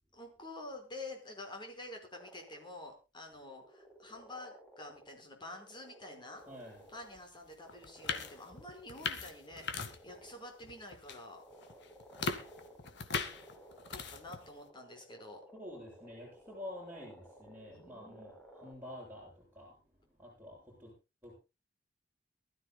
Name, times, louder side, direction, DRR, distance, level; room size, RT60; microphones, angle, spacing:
voice 1, 0.1-6.4 6.9-11.4 13.9-15.4 17.7-18.3, left 2 dB, 25° left, 3 dB, 5.0 m, -48 dB
sound 1, 2.1-2.7 3.3-7.3 7.5-18.7, equal, 5° left, 4.0 m, -57 dB
voice 2, 6.5-6.8 15.5-19.8 20.2-20.9 21.2-21.4, left 1 dB, 10° right, -5 dB, 7.9 m, -48 dB
sound 2, 7.1-7.2 7.7-10.3 10.6-11.2 11.6-14.5, left 4 dB, 65° left, 1.9 m, -40 dB
23.5 x 13.5 x 2.2 m, 0.29 s
head